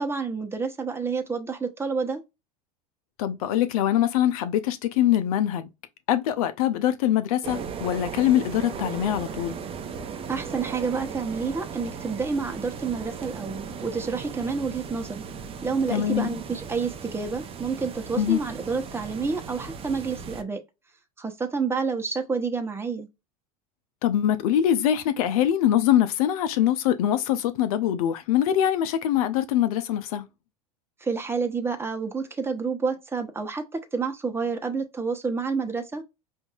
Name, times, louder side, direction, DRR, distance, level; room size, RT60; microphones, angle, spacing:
voice 1, 0.0-2.2 10.3-15.2 15.6-20.6 21.2-23.1 31.0-36.0, right 5 dB, 15° right, 1.0 m, -29 dB
voice 2, 3.2-5.7 6.1-9.6 15.9-16.3 18.1-18.4 24.0-30.3, left 11 dB, 75° left, 0.7 m, -23 dB
sound 1, 7.4-20.4, right 6 dB, 30° right, 0.6 m, -37 dB
5.2 x 2.6 x 2.4 m
hypercardioid pair, 90°, 19 cm